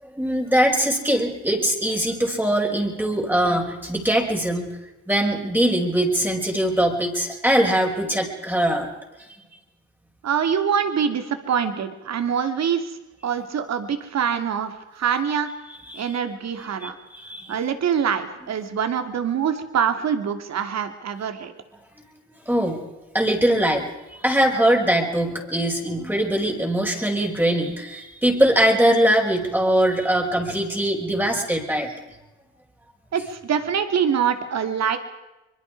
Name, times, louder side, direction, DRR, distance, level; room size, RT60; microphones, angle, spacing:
voice 1, 0.0-4.8 5.1-8.9 15.9-16.2 16.8-17.5 22.5-22.8 23.1-31.9, right 1 dB, 5° right, 0 dB, 5.4 m, -22 dB
voice 2, 10.2-13.0 13.2-15.5 15.9-16.9 17.5-21.5 33.1-35.0, right 7 dB, 60° right, 8 dB, 2.9 m, -24 dB
24.5 x 23.0 x 4.9 m, 1.0 s
cardioid pair, 90°, 30 cm